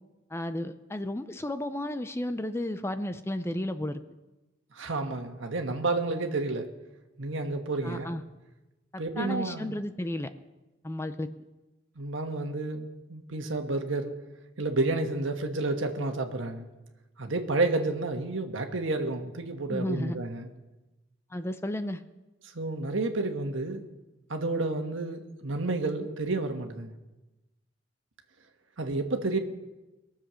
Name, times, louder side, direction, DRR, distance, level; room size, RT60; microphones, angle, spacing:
voice 1, 0.3-4.0 7.8-8.2 9.2-10.3 10.8-11.3 19.7-20.2 21.3-22.0, left 1 dB, 15° left, 10 dB, 0.5 m, -33 dB
voice 2, 4.7-6.7 7.2-8.1 9.0-9.8 12.0-14.1 14.6-16.7 17.2-20.5 22.5-23.8 24.3-26.9 28.8-29.4, right 2 dB, 80° right, 5 dB, 1.4 m, -30 dB
21.5 x 7.4 x 6.3 m, 1.1 s
head